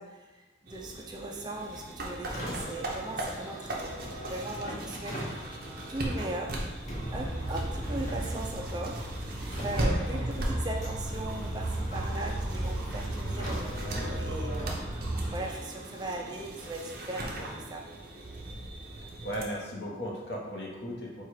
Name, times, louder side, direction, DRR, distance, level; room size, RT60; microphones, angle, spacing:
voice 1, 0.0-5.2 5.9-6.6 7.1-9.0 9.6-14.8 15.3-17.9, right 1 dB, 20° right, 0 dB, 0.4 m, -38 dB
sound 1, 0.7-19.4, right 1 dB, 50° right, 0.7 m, -39 dB
Car, 2.2-17.6, equal, 40° left, 1.1 m, -43 dB
sound 2, 6.8-15.4, right 1 dB, 5° left, 1.2 m, -35 dB
voice 2, 9.8-10.2 19.0-21.2, equal, 60° left, -2 dB, 0.9 m, -37 dB
4.6 x 2.4 x 4.5 m, 1.1 s
head